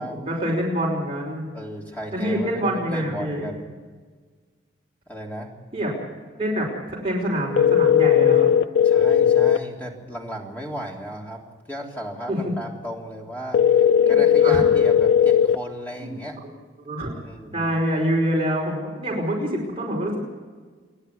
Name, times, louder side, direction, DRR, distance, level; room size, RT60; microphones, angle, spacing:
voice 1, 0.0-1.5 2.1-3.4 5.7-5.9 6.4-8.5 12.3-12.4 14.0-14.7 16.0-16.1 16.8-17.1 17.5-20.2, equal, 30° right, -3 dB, 5.2 m, -26 dB
voice 2, 1.5-3.6 5.1-5.5 8.8-11.4 11.7-13.6 14.1-16.4 17.1-17.7, equal, 10° left, -2 dB, 3.5 m, -35 dB
sound 1, 7.6-9.6 13.5-15.6, left 9 dB, 80° left, 0.6 m, -17 dB
28.0 x 11.5 x 8.3 m, 1.5 s
head